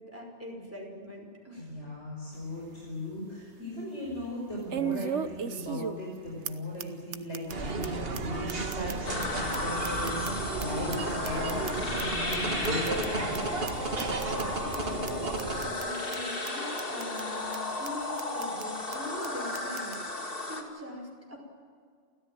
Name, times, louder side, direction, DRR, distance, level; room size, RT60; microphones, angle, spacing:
voice 1, 0.0-1.7 13.9-21.4, left 1 dB, 10° right, 0 dB, 5.4 m, -43 dB
voice 2, 1.6-10.3 10.6-13.3, left 1 dB, 75° left, -3 dB, 6.0 m, -37 dB
sound 1, 2.3-2.4 2.9-3.0 4.7-6.2 6.4-6.5 6.8-6.9 7.1-7.5 7.8-7.9 8.1-8.2 8.5-10.6 10.9-12.0 12.3-12.4 12.6-13.1 13.3-13.4 13.7-13.8 14.0-14.4 14.7-14.8 15.1-15.2 15.4-15.8 16.1-16.2 16.5-16.6 16.8-17.2 17.5-17.6 17.8-17.9 18.2-18.6 18.9-19.0 19.2-19.3 19.5-20.0, right 8 dB, 75° right, 1.3 m, -36 dB
sound 2, 7.5-15.7, right 3 dB, 55° right, 1.9 m, -33 dB
sound 3, 9.0-20.6, left 2 dB, 50° left, 2.8 m, -34 dB
29.5 x 14.0 x 9.1 m, 2.1 s
omnidirectional pair, 1.2 m